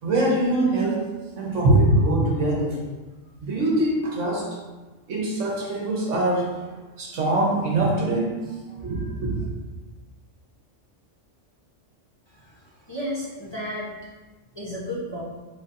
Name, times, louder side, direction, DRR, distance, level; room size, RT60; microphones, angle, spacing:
voice 1, 0.0-1.0 1.3-2.8 3.4-4.6 5.1-6.7 7.0-8.3 8.8-9.5, right 1 dB, 75° right, -3 dB, 1.3 m, -23 dB
voice 2, 12.9-13.9 14.5-15.2, equal, 25° left, -9 dB, 0.8 m, -32 dB
4.2 x 4.0 x 2.6 m, 1.2 s
omnidirectional pair, 1.3 m